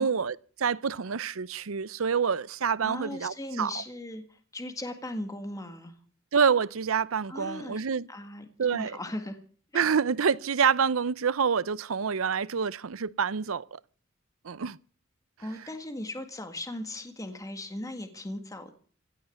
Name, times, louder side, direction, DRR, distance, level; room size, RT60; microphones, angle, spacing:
voice 1, 0.0-3.7 6.3-8.1 8.6-9.0 9.7-13.6 14.4-14.8, right 6 dB, 90° right, 0.6 m, -27 dB
voice 2, 2.8-5.9 7.3-7.8 8.1-9.4 9.7-9.9 15.4-18.7, left 1 dB, 15° left, 1.8 m, -38 dB
16.5 x 7.9 x 9.4 m
head